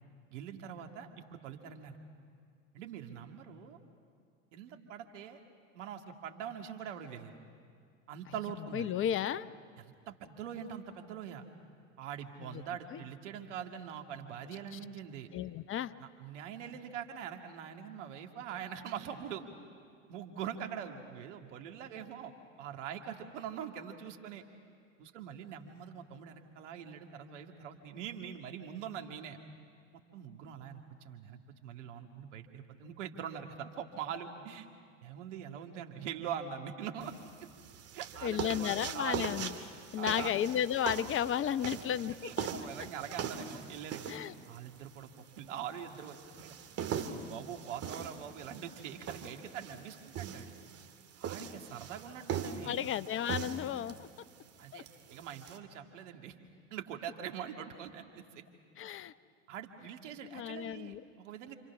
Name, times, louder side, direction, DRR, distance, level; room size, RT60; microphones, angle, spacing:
voice 1, 0.3-2.0 2.7-3.8 4.5-5.4 5.7-7.4 8.1-8.9 9.8-11.4 12.0-15.3 16.0-19.4 20.1-22.3 22.6-24.4 25.0-29.4 30.1-34.7 35.0-37.1 37.9-39.3 40.0-40.3 42.2-44.1 44.5-46.5 46.9-50.6 51.2-52.9 54.6-56.4 56.7-58.0 58.3-58.4 59.5-61.5, right 8 dB, 70° right, 4 dB, 2.4 m, -43 dB
voice 2, 8.7-9.5 12.4-12.6 12.9-13.0 15.3-15.9 38.2-39.5 39.9-42.5 44.1-44.3 52.6-54.1 54.7-54.8 58.8-59.1 60.2-61.0, left 10 dB, 35° left, 14 dB, 0.9 m, -33 dB
sound 1, 37.0-55.6, right 7 dB, 40° right, 2.3 m, -41 dB
29.0 x 26.5 x 6.1 m, 2.2 s
hypercardioid pair, 80°, 38 cm